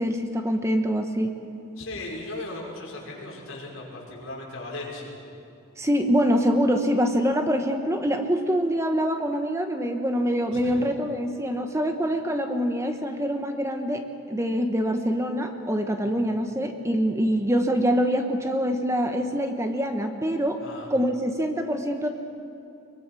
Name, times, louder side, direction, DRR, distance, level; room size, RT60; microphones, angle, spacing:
voice 1, 0.0-1.3 5.8-20.6 20.9-22.1, equal, 15° right, 6 dB, 1.0 m, -25 dB
voice 2, 1.8-5.2 10.5-10.8 20.6-20.9, left 2 dB, 65° left, -4 dB, 5.6 m, -37 dB
22.5 x 22.0 x 6.2 m, 2.7 s
head